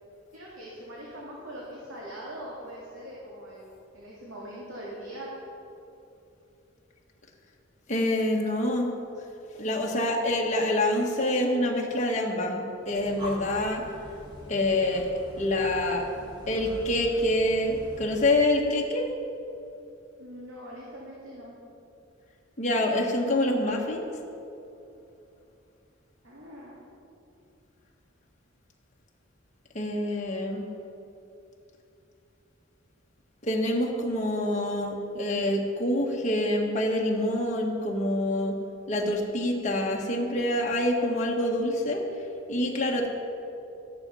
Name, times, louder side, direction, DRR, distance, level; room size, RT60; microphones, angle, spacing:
voice 1, 0.3-5.3 20.2-21.6 26.2-26.8 30.5-30.6, equal, 85° right, -5 dB, 2.2 m, -42 dB
voice 2, 7.9-8.9 9.6-13.8 14.5-15.1 15.4-16.1 16.5-19.1 22.6-24.1 29.7-30.7 33.4-38.6 38.9-42.0 42.5-43.1, left 1 dB, 35° left, -1 dB, 1.5 m, -26 dB
Breathing, 12.8-18.6, equal, 20° right, 2.0 m, -44 dB
13.5 x 10.5 x 5.6 m, 2.8 s
head